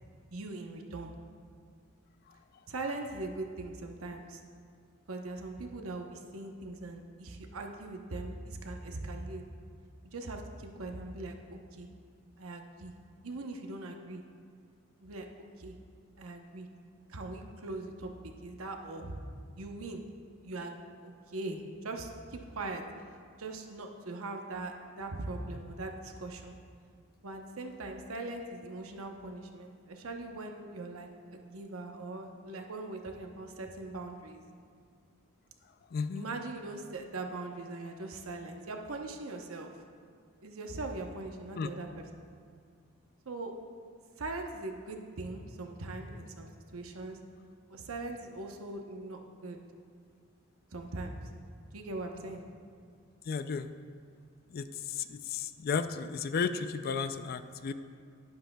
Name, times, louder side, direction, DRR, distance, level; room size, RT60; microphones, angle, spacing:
voice 1, 0.3-1.1 2.7-4.4 5.1-9.4 10.1-11.9 12.4-12.9 13.2-14.2 15.0-15.3 15.6-15.7 16.2-16.7 17.1-19.1 19.6-20.0 20.4-20.8 21.0-22.8 23.4-26.6 27.2-34.4 36.1-39.7 40.4-42.2 43.3-43.5 44.2-47.2 47.7-49.6 50.7-51.2 51.7-52.4, right 2 dB, 70° right, 3 dB, 0.9 m, -41 dB
voice 2, 35.9-36.2 41.6-41.7 53.3-53.7 54.5-54.7 55.3-57.7, left 5 dB, 45° left, 11 dB, 0.3 m, -33 dB
11.5 x 10.5 x 2.3 m, 2.2 s
head